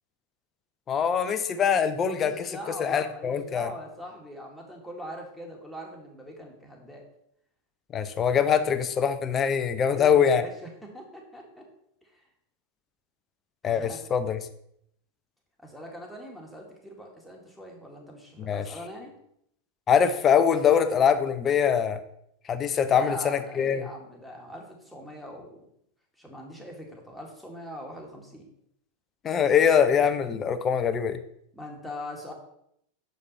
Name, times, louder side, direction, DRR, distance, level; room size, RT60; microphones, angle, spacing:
voice 1, 0.9-2.5 2.8-3.7 7.9-10.4 13.6-14.4 18.4-18.6 19.9-22.0 22.5-23.8 29.2-31.2, left 7 dB, 30° left, 10 dB, 0.7 m, -23 dB
voice 2, 2.2-7.0 9.9-11.6 12.0-12.2 13.6-14.0 15.6-19.1 22.9-25.6 26.2-28.4 31.5-32.3, equal, ahead, -1 dB, 2.0 m, -42 dB
6.8 x 5.2 x 4.2 m, 0.72 s
hypercardioid pair, 100°, 0 cm